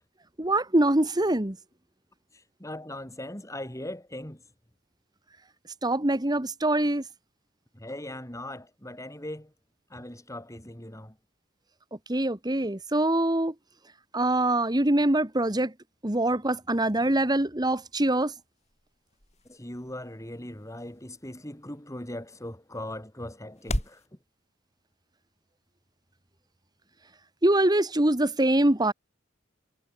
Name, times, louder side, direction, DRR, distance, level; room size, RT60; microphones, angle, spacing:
voice 1, 0.4-1.6 5.8-7.0 12.1-13.5 14.1-15.7 16.0-18.3 27.4-28.9, right 1 dB, 20° right, 1.6 m, -24 dB
voice 2, 2.3-4.4 7.7-9.5 9.9-11.2 19.5-24.2, left 1 dB, 15° left, 5.5 m, -39 dB
sound 1, 17.8-24.1, left 1 dB, 35° left, 4.6 m, -40 dB
head